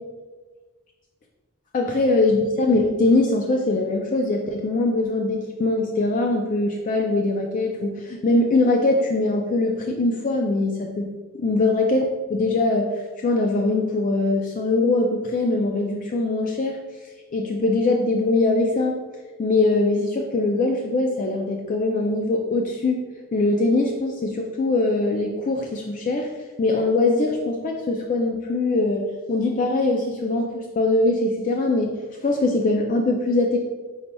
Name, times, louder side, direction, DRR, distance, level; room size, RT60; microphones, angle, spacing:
voice 1, 1.7-11.1 11.3-16.8 17.3-19.0 19.4-26.3 26.6-32.0 32.2-33.6, left 2 dB, 40° left, 2 dB, 0.3 m, -22 dB
5.5 x 4.1 x 2.2 m, 1.3 s
head